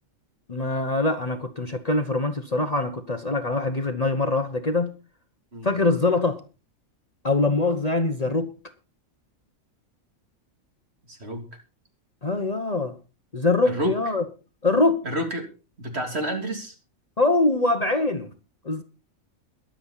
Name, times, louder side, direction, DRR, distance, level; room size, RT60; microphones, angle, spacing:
voice 1, 0.5-4.9 5.6-6.4 7.2-8.5 12.2-12.9 13.3-14.2 14.6-15.0 17.2-18.3 18.6-18.8, left 2 dB, 30° left, 1.1 m, -23 dB
voice 2, 11.1-11.5 13.6-14.0 15.0-15.5 15.8-16.7, right 1 dB, 55° right, 3.3 m, -30 dB
22.0 x 7.8 x 4.1 m
omnidirectional pair, 1.3 m